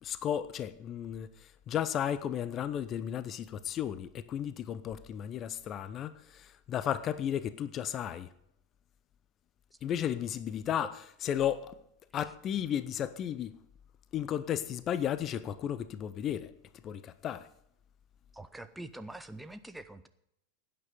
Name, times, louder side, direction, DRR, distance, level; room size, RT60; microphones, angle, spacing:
voice 1, 0.0-1.3 1.7-8.3 9.8-11.0 11.2-11.7 12.1-13.6 14.1-16.5 16.8-17.5, left 10 dB, 30° left, 0.7 m, -34 dB
voice 2, 18.3-20.1, right 2 dB, 5° right, 0.8 m, -44 dB
16.5 x 9.3 x 5.1 m
figure-of-eight pair, 90°, 0 cm